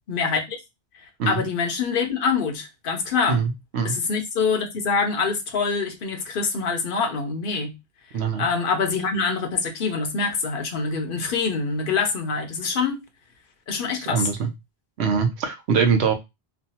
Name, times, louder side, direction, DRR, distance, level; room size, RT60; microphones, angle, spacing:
voice 1, 0.1-0.6 0.9-3.4 3.8-7.7 8.4-13.0 13.7-14.3, left 5 dB, 55° left, 0.8 m, -25 dB
voice 2, 3.3-3.9 8.1-8.4 14.1-14.5 15.0-16.1, right 6 dB, 75° right, 0.9 m, -23 dB
3.1 x 2.2 x 2.8 m
omnidirectional pair, 1.1 m